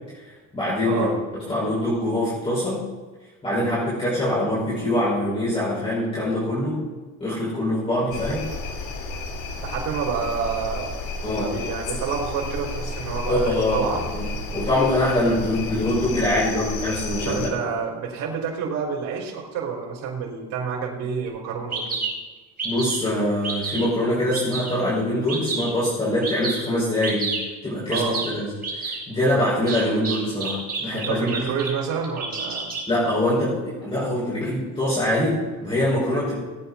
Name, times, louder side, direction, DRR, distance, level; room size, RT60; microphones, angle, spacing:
voice 1, 0.1-1.1 1.4-2.9 3.4-6.8 7.2-8.5 11.2-11.5 13.3-17.5 22.6-27.4 27.6-31.5 32.9-36.3, left 1 dB, 15° left, -9 dB, 5.2 m, -24 dB
sound 1, 8.1-17.5, left 3 dB, 65° left, 3.0 m, -32 dB
voice 2, 9.6-11.0 11.3-14.0 17.3-22.0 27.9-28.2 30.8-32.7, right 6 dB, 80° right, -3 dB, 3.6 m, -28 dB
Bird vocalization bird call bird song, 21.2-21.3 21.7-22.1 22.6-23.0 23.4-23.8 24.3-24.7 25.3-25.7 26.2-26.6 27.0-27.4 27.9-28.3 28.6-29.0 29.7-31.7 32.0-32.8, right 4 dB, 30° right, 4.3 m, -29 dB
18.5 x 9.4 x 4.2 m, 1.3 s
cardioid pair, 170°, 32 cm